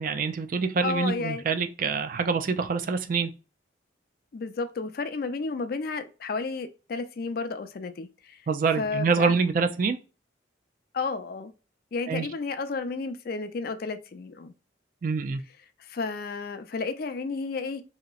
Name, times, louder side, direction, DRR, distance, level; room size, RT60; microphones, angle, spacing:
voice 1, 0.0-3.3 8.5-10.0 12.1-12.3 15.0-15.4, right 5 dB, 45° right, 0.4 m, -26 dB
voice 2, 0.8-1.4 4.3-8.4 8.8-9.3 10.9-11.5 11.9-14.5 15.8-17.8, left 4 dB, 50° left, 0.4 m, -32 dB
3.0 x 2.8 x 2.3 m
head